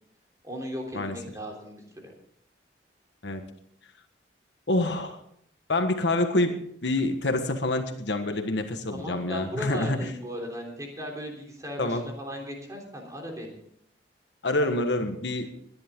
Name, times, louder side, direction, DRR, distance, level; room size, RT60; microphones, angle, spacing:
voice 1, 0.4-2.1 8.9-13.6 15.0-15.1, equal, 20° right, 1 dB, 3.4 m, -37 dB
voice 2, 4.7-5.2 5.7-10.1 11.8-12.0 14.4-15.5, left 2 dB, 70° left, 7 dB, 1.4 m, -27 dB
21.0 x 10.5 x 3.7 m, 0.69 s
head